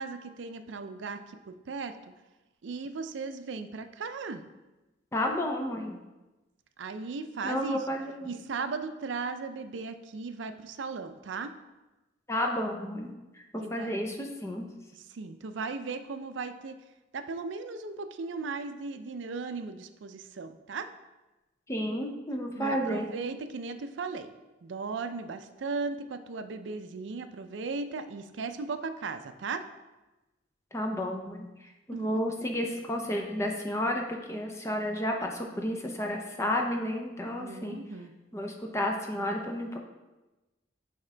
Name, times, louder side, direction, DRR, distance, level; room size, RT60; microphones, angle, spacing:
voice 1, 0.0-2.0 2.6-4.4 6.8-7.8 8.2-11.5 13.6-13.9 15.1-16.8 17.1-20.9 22.5-24.3 24.6-29.7 31.9-32.2 37.4-38.1, right 4 dB, 70° right, 10 dB, 0.4 m, -37 dB
voice 2, 5.1-6.0 7.4-8.3 12.3-14.7 21.7-23.1 30.7-37.8 38.3-39.8, left 1 dB, 15° left, 2 dB, 0.6 m, -32 dB
9.5 x 3.6 x 3.3 m, 1.1 s
head